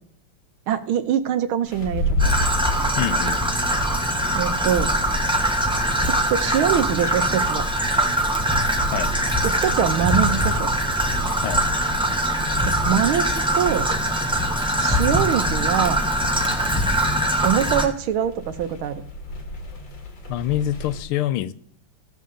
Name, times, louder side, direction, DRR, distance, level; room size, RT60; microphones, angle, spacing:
voice 1, 0.7-2.0 4.3-4.9 6.0-7.6 9.4-10.7 12.6-13.9 14.8-16.0 17.4-18.9, right 9 dB, 75° right, 10 dB, 1.6 m, -23 dB
sound 1, 1.6-21.0, left 1 dB, 60° left, 2.5 m, -34 dB
Traffic noise roadway noise / Trickle dribble, 2.2-17.9, right 1 dB, 5° right, 0.5 m, -22 dB
voice 2, 3.0-3.4 8.9-9.1 11.4-11.6 20.3-21.5, left 12 dB, 85° left, 15 dB, 1.5 m, -25 dB
15.5 x 7.0 x 3.7 m, 0.63 s
omnidirectional pair, 2.3 m